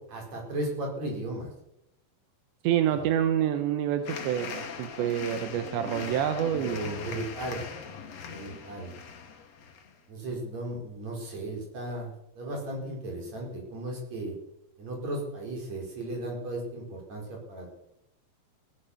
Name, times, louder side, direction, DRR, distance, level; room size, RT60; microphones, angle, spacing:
voice 1, 0.1-1.5 2.9-3.0 6.5-7.6 8.3-8.9 10.1-14.3 14.8-17.7, right 1 dB, 40° right, 0 dB, 5.7 m, -36 dB
voice 2, 2.6-7.0, right 10 dB, 85° right, 8 dB, 3.2 m, -27 dB
sound 1, 4.1-10.0, left 6 dB, 50° left, 2.2 m, -40 dB
16.5 x 12.0 x 6.7 m, 0.81 s
omnidirectional pair, 5.1 m